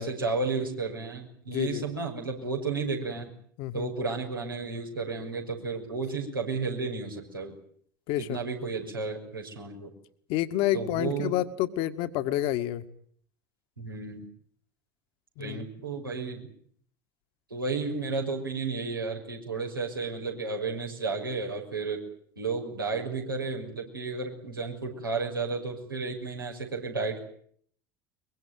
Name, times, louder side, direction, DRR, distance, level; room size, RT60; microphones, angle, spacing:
voice 1, 0.0-3.3 3.7-7.6 8.3-9.9 10.7-11.4 13.8-14.2 15.4-16.5 17.5-22.0 22.4-27.2, right 4 dB, 85° right, 0 dB, 6.1 m, -32 dB
voice 2, 1.5-1.8 3.6-3.9 8.1-8.4 10.3-12.8 15.4-15.7, left 13 dB, 55° left, 10 dB, 2.0 m, -29 dB
23.5 x 23.0 x 9.3 m, 0.63 s
figure-of-eight pair, 70°, 11 cm